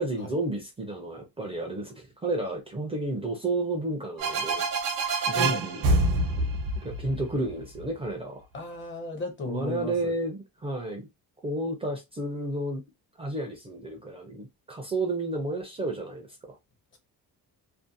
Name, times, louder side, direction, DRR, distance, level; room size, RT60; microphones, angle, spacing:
voice 1, 0.0-4.6 5.3-5.9 6.8-8.5 9.5-11.1 11.4-12.8 13.2-16.6, right 2 dB, 15° right, 0.4 m, -31 dB
sound 1, 4.2-7.8, right 2 dB, 70° right, 0.7 m, -26 dB
voice 2, 5.3-5.6 8.5-10.1, left 3 dB, 35° left, 0.7 m, -36 dB
2.5 x 2.1 x 2.6 m
cardioid pair, 165°, 36 cm